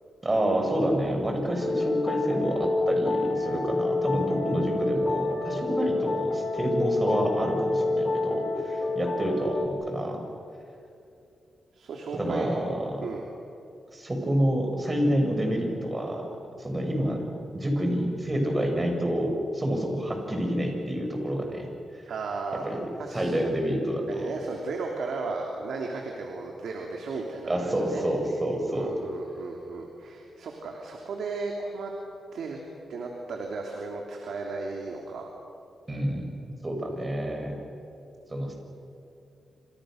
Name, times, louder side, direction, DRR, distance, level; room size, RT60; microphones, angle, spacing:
voice 1, 0.2-10.2 12.1-13.1 13.9-16.3 16.6-17.2 17.5-21.7 21.9-22.0 22.6-22.8 23.1-24.3 27.5-29.0 35.9-37.6 38.3-38.5, right 1 dB, 25° right, 2 dB, 6.8 m, -28 dB
sound 1, 1.6-9.7, left 3 dB, 45° left, 3.3 m, -28 dB
voice 2, 11.7-12.5 13.0-13.2 22.0-22.6 23.0-23.3 24.1-28.0 28.7-31.9 32.3-32.6 32.9-35.3, right 3 dB, 80° right, 1 dB, 3.2 m, -35 dB
28.5 x 27.5 x 6.6 m, 2.7 s
cardioid pair, 90°, 0 cm